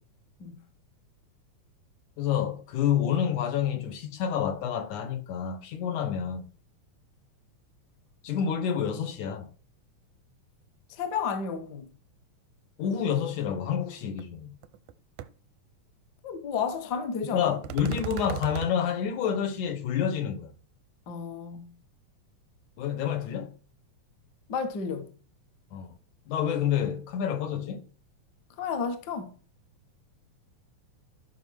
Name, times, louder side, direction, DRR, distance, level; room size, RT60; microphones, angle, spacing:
voice 1, 2.2-6.4 8.2-9.5 12.8-14.5 17.3-20.5 22.8-23.5 25.7-25.9 26.3-27.8, left 8 dB, 75° left, 2.6 m, -28 dB
voice 2, 10.9-12.0 16.2-17.5 21.1-21.8 24.5-25.1 28.6-29.3, left 6 dB, 50° left, 1.3 m, -32 dB
sound 1, 14.2-14.3 14.6-14.9 15.2-15.3 17.6-18.7, right 13 dB, 90° right, 2.2 m, -36 dB
13.0 x 5.5 x 6.3 m
omnidirectional pair, 3.5 m